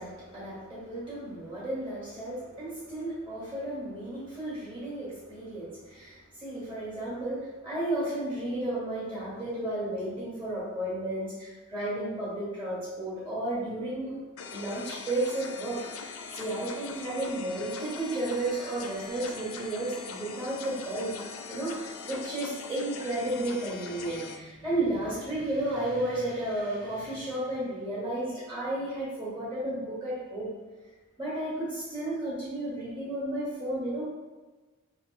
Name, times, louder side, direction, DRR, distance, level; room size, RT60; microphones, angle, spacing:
voice 1, 0.0-14.2 14.5-21.1 21.5-30.5 31.2-34.0, right 1 dB, 25° right, -11 dB, 1.4 m, -33 dB
sound 1, 14.4-24.4, left 5 dB, 85° left, 0.4 m, -41 dB
3.1 x 3.0 x 2.5 m, 1.2 s
head